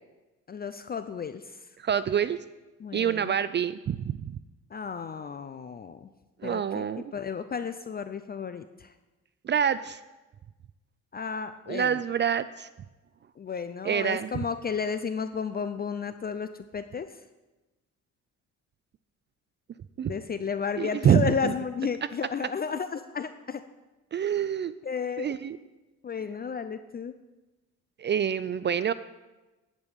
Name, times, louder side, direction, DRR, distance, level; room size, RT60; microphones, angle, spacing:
voice 1, 0.5-1.7 2.8-3.3 4.7-6.1 6.4-6.9 7.1-8.9 11.1-12.0 13.4-17.2 20.0-23.6 24.8-25.3 26.0-27.1, left 6 dB, 30° left, 10 dB, 0.5 m, -33 dB
voice 2, 1.8-2.4 2.9-4.4 6.4-7.0 9.4-10.0 11.7-12.7 13.8-14.3 20.0-20.1 20.8-21.5 24.1-24.7 25.2-25.6 28.0-28.9, right 8 dB, 35° right, 15 dB, 0.4 m, -26 dB
10.5 x 5.3 x 8.3 m, 1.1 s
cardioid pair, 90°, 30 cm